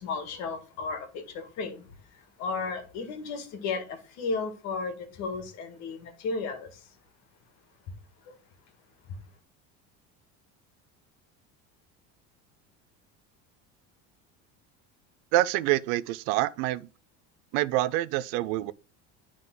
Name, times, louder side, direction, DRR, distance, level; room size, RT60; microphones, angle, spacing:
voice 1, 0.0-6.9 8.3-8.4 9.1-9.2, left 4 dB, 60° left, 1.8 m, -34 dB
voice 2, 15.3-16.9 17.5-18.7, right 16 dB, 75° right, 0.5 m, -26 dB
10.5 x 3.7 x 3.8 m
cardioid pair, 155°, 31 cm